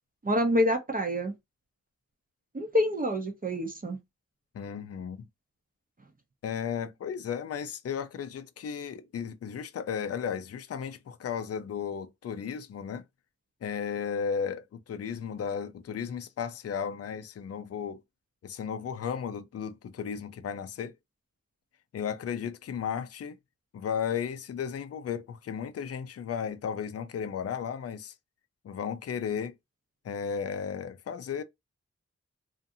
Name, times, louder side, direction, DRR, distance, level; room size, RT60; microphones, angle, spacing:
voice 1, 0.2-1.3 2.5-4.0, equal, 30° right, 0.7 m, -27 dB
voice 2, 4.5-5.3 6.4-13.0 13.6-18.0 18.4-20.9 21.9-23.4 23.7-28.1 28.6-29.5 30.0-31.4, left 7 dB, 55° left, 0.4 m, -34 dB
2.6 x 2.5 x 2.6 m
cardioid pair, 65°, 29 cm